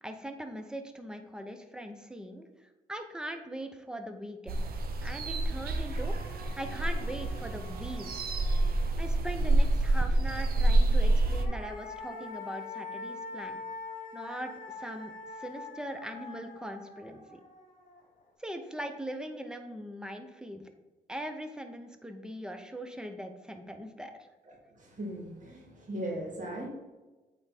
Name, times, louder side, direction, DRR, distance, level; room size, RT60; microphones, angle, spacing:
voice 1, 0.0-4.6 5.0-8.2 9.0-13.6 14.1-14.5 14.8-17.4 18.4-20.7 21.1-24.1, right 1 dB, 5° right, 6 dB, 0.8 m, -41 dB
sound 1, 4.5-11.5, right 2 dB, 75° right, 0.8 m, -27 dB
sound 2, 5.2-5.3 5.6-9.3 10.9-18.2, left 3 dB, 55° left, 1.8 m, -45 dB
voice 2, 24.8-26.7, right 1 dB, 55° right, -2 dB, 2.3 m, -38 dB
8.4 x 3.7 x 4.2 m, 1.2 s
cardioid pair, 105°, 16 cm